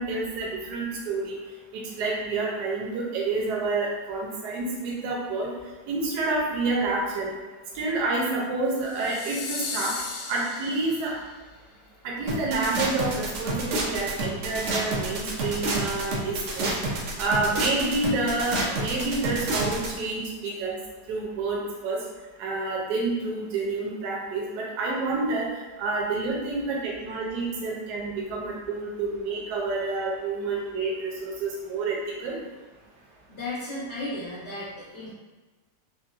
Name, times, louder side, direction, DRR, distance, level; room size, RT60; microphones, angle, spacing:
voice 1, 0.0-1.4 1.7-5.5 5.9-7.3 7.7-9.9 10.3-11.1 12.0-16.7 17.2-20.8 21.1-22.0 22.4-25.5 25.8-32.3, right 3 dB, 75° right, -3 dB, 1.1 m, -28 dB
sound 1, 8.8-11.3, left 4 dB, 75° left, 1.1 m, -36 dB
sound 2, 12.3-19.9, right 2 dB, 90° right, 0.6 m, -29 dB
voice 2, 33.3-35.1, left 2 dB, 55° left, -10 dB, 0.9 m, -34 dB
3.7 x 2.0 x 2.4 m, 1.3 s
omnidirectional pair, 1.8 m